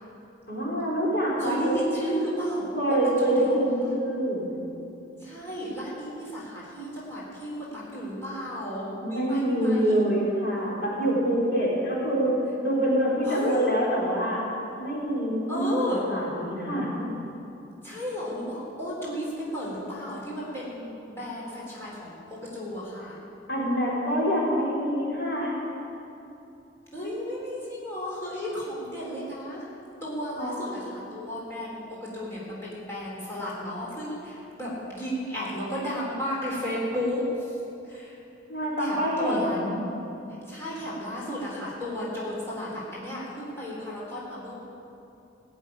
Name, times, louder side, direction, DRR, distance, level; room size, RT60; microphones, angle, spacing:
voice 1, 0.5-1.7 2.7-4.5 9.0-14.4 14.8-17.1 23.5-25.5 30.4-30.5 38.5-39.8, equal, 60° left, -5 dB, 4.0 m, -26 dB
voice 2, 1.4-3.9 5.2-9.9 11.6-11.8 13.2-13.7 15.5-16.1 17.8-23.2 26.9-29.7 30.0-37.6 37.8-38.2 38.8-39.7 40.3-44.6, equal, 15° left, -8 dB, 3.9 m, -33 dB
16.5 x 7.4 x 9.8 m, 2.8 s
head